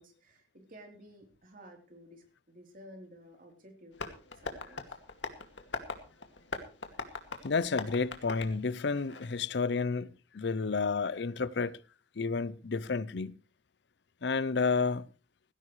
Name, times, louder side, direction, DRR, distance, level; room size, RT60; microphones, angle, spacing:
voice 1, 0.0-4.1 4.4-5.0, equal, 50° right, 3.7 m, -53 dB
Tap, 3.9-9.4, left 3 dB, 85° left, 2.2 m, -42 dB
voice 2, 7.4-11.8 12.2-13.3 14.2-15.1, left 4 dB, 65° left, 0.6 m, -31 dB
17.0 x 16.0 x 3.2 m
head